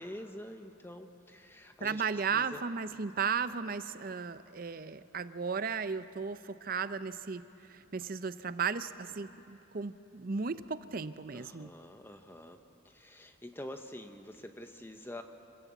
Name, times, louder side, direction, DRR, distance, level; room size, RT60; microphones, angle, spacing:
voice 1, 0.0-2.0 2.3-2.6 11.3-12.6 12.8-15.2, left 1 dB, 10° left, 6 dB, 0.9 m, -46 dB
voice 2, 1.8-7.4 7.7-11.7, right 5 dB, 45° right, 13 dB, 0.5 m, -35 dB
26.5 x 15.0 x 8.3 m, 2.9 s
head